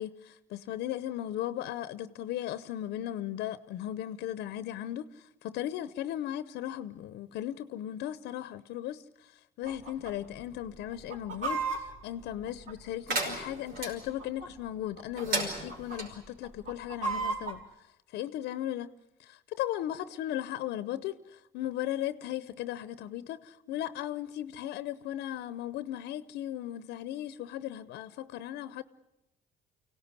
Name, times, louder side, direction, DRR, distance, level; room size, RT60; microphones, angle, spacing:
voice 1, 0.0-5.1 5.4-9.3 9.6-17.6 18.1-18.9 19.2-28.8, left 12 dB, 80° left, 0.8 m, -36 dB
Chicken rooster, 9.7-10.1 10.4-10.5 10.9-13.2 13.9-14.7 15.0-15.2 15.5-16.0 16.4-17.6, right 4 dB, 45° right, 4.6 m, -35 dB
sound 1, 13.1-13.9 15.2-16.1, right 2 dB, 65° right, 5.4 m, -33 dB
24.5 x 17.5 x 9.7 m
cardioid pair, 110°, 17 cm